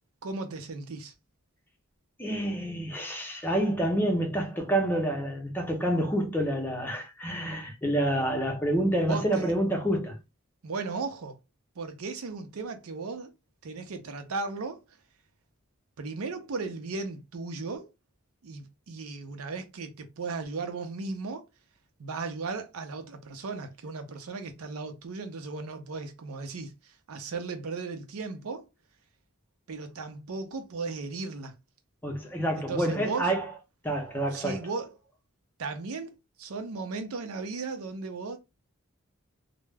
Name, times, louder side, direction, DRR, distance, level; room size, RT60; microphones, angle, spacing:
voice 1, 0.2-1.1 9.1-9.5 10.6-11.4 11.8-13.3 13.6-14.8 16.0-17.9 18.4-21.5 22.0-28.7 29.7-31.5 32.6-33.3 34.3-35.0 35.6-38.4, right 4 dB, 90° right, 0.5 m, -36 dB
voice 2, 2.2-10.2 32.0-33.5 33.8-34.6, right 1 dB, 10° left, 0.6 m, -28 dB
2.2 x 2.0 x 3.2 m
head